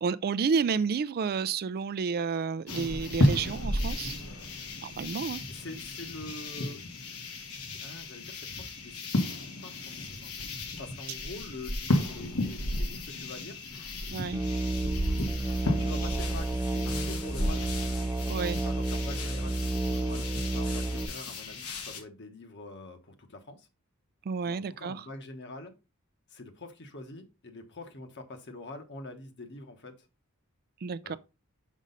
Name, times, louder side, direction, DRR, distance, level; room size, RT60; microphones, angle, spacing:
voice 1, 0.0-4.1 4.8-5.4 14.1-14.4 18.3-18.6 24.3-25.1 30.8-31.2, right 5 dB, 45° right, 0.4 m, -30 dB
sound 1, 2.7-22.0, left 1 dB, 80° left, 1.5 m, -33 dB
voice 2, 5.5-6.8 7.8-9.3 9.6-13.6 15.6-17.7 18.4-23.7 24.4-25.7 26.3-30.1 31.0-31.2, left 2 dB, 55° left, 1.3 m, -45 dB
Musical instrument, 14.3-21.1, right 2 dB, 10° right, 0.6 m, -31 dB
6.2 x 5.4 x 3.9 m
head